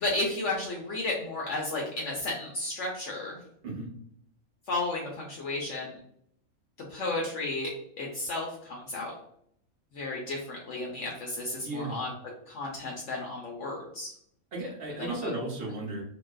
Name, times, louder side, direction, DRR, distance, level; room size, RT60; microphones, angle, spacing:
voice 1, 0.0-3.4 4.7-6.0 6.9-7.7 8.0-9.1 9.9-12.1 12.5-14.1 15.2-15.3, left 2 dB, 65° left, -2 dB, 0.8 m, -33 dB
voice 2, 11.6-12.0 14.5-16.0, right 2 dB, 55° right, -2 dB, 0.8 m, -35 dB
2.5 x 2.3 x 2.2 m, 0.68 s
omnidirectional pair, 1.5 m